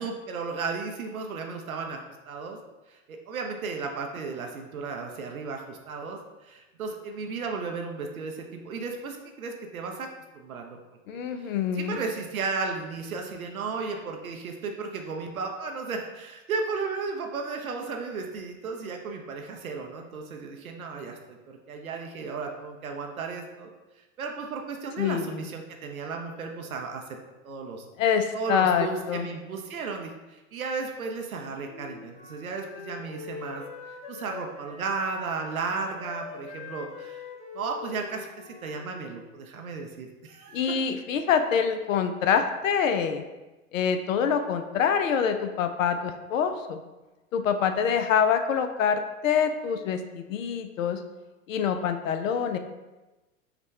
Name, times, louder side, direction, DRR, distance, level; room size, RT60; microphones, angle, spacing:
voice 1, 0.0-2.6 2.9-10.1 10.3-10.8 11.1-23.7 24.2-27.2 27.4-27.9 28.3-37.2 37.5-40.7, right 4 dB, 85° right, 2 dB, 0.6 m, -34 dB
voice 2, 11.1-12.0 25.0-25.4 28.0-29.3 40.5-43.2 43.7-46.8 47.3-51.0 51.5-52.6, left 7 dB, 70° left, 7 dB, 0.5 m, -25 dB
Wind instrument woodwind instrument, 31.6-39.4, left 5 dB, 15° left, 0.5 m, -44 dB
5.7 x 2.2 x 3.5 m, 1.1 s
hypercardioid pair, 90°, 41 cm